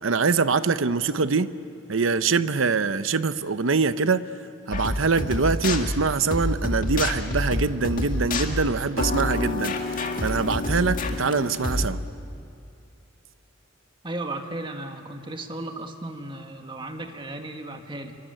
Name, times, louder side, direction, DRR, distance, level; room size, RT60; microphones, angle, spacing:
voice 1, 0.0-1.5 1.9-4.2 4.7-12.0, right 4 dB, 80° right, 13 dB, 0.8 m, -24 dB
sound 1, 4.7-11.9, left 2 dB, 45° left, 1.9 m, -28 dB
voice 2, 14.0-18.2, right 2 dB, 25° right, 5 dB, 1.7 m, -35 dB
27.0 x 24.0 x 9.1 m, 2.6 s
head